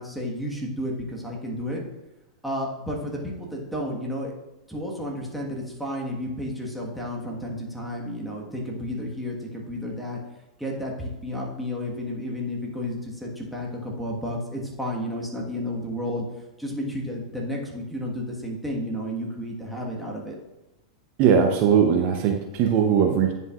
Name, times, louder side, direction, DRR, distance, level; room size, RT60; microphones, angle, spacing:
voice 1, 0.0-1.8 2.4-4.3 4.7-10.2 10.6-16.2 16.6-20.3, left 1 dB, ahead, -3 dB, 1.4 m, -32 dB
voice 2, 21.2-23.3, right 7 dB, 45° right, 3 dB, 0.8 m, -20 dB
9.6 x 5.3 x 2.4 m, 0.99 s
hypercardioid pair, 105°, 3 cm